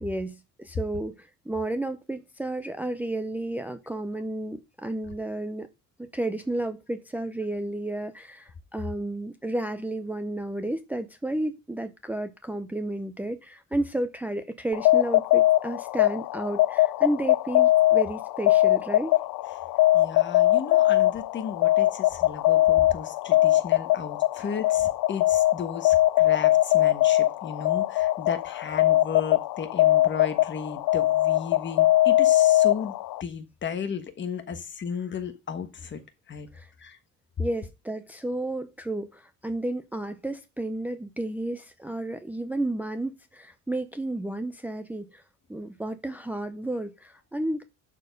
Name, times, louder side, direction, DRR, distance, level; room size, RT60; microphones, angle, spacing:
voice 1, 0.0-5.7 6.0-19.2 24.4-24.5 36.5-36.7 37.4-45.2 45.5-47.6, right 1 dB, 5° right, 0.6 m, -32 dB
sound 1, 14.7-33.2, left 15 dB, 85° left, 0.5 m, -22 dB
voice 2, 19.9-32.9 33.2-36.0 36.3-36.5 36.8-37.0, left 6 dB, 35° left, 1.4 m, -35 dB
11.5 x 4.5 x 5.2 m
cardioid pair, 160°, 33 cm